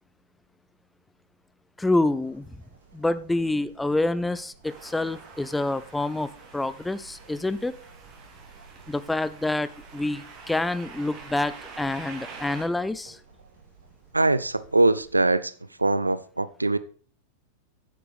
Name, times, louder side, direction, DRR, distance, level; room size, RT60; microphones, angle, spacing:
voice 1, 1.8-2.6 2.9-7.7 8.9-13.2, left 2 dB, 5° left, 0.6 m, -27 dB
sound 1, 1.8-15.2, right 4 dB, 65° right, 3.1 m, -54 dB
sound 2, 4.6-12.6, right 4 dB, 35° right, 2.6 m, -46 dB
voice 2, 14.1-15.5 15.8-16.8, right 2 dB, 80° right, 0.5 m, -22 dB
9.4 x 7.4 x 5.1 m
figure-of-eight pair, 90°, 0 cm